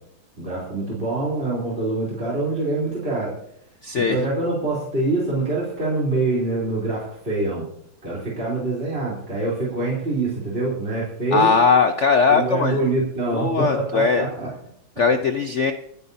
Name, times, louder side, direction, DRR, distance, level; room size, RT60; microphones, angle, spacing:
voice 1, 0.4-3.3 4.0-7.7 8.0-11.6 12.3-14.5, right 2 dB, 30° right, -6 dB, 3.8 m, -25 dB
voice 2, 3.8-4.2 11.3-12.8 13.3-14.3 15.0-15.7, left 5 dB, 75° left, 7 dB, 0.6 m, -19 dB
26.5 x 9.8 x 2.8 m, 0.71 s
omnidirectional pair, 2.2 m